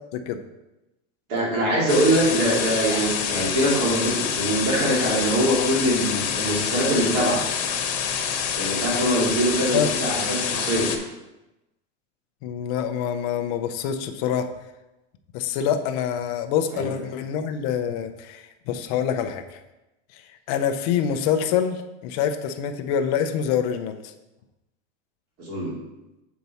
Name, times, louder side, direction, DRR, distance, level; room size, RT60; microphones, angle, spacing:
voice 1, 1.3-7.4 8.6-10.9 16.7-16.9 25.4-25.7, right 1 dB, 40° right, -4 dB, 2.4 m, -23 dB
sound 1, 1.9-11.0, left 7 dB, 65° left, 1.1 m, -27 dB
voice 2, 12.4-14.5 15.3-19.6 20.5-24.0, left 8 dB, 35° left, 7 dB, 0.5 m, -26 dB
6.9 x 4.6 x 4.1 m, 0.99 s
supercardioid pair, 175°, 35 cm